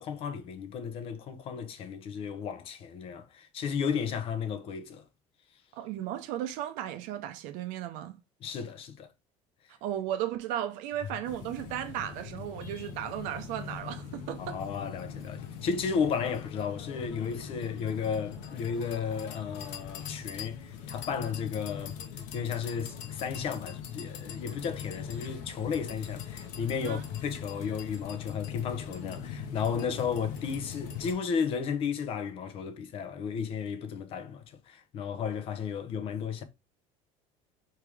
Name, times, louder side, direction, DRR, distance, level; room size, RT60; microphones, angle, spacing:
voice 1, 0.0-5.0 8.4-9.1 14.4-22.0 22.3-36.4, left 6 dB, 40° left, 0.7 m, -34 dB
voice 2, 5.7-8.2 9.8-14.6 26.8-27.0, right 11 dB, 65° right, 0.7 m, -35 dB
sound 1, 11.2-31.1, left 7 dB, 65° left, 1.0 m, -41 dB
4.6 x 3.3 x 3.4 m
cardioid pair, 155°, 15 cm